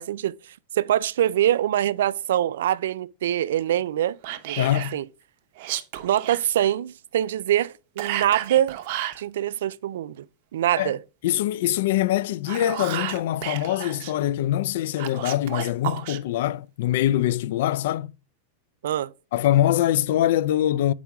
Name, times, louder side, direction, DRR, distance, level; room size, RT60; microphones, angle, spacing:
voice 1, 0.0-4.2 4.5-5.1 6.0-8.8 9.2-10.3 10.5-11.0 18.8-19.1, right 11 dB, 85° right, 0.3 m, -24 dB
Whispering, 4.2-5.0 5.6-6.4 8.0-9.2 12.3-14.1 15.0-16.2, right 13 dB, 60° right, 0.7 m, -32 dB
voice 2, 4.6-4.9 10.8-10.9 11.2-18.1 19.3-20.9, left 13 dB, 70° left, 0.3 m, -23 dB
7.1 x 4.7 x 3.4 m
supercardioid pair, 135°, 0 cm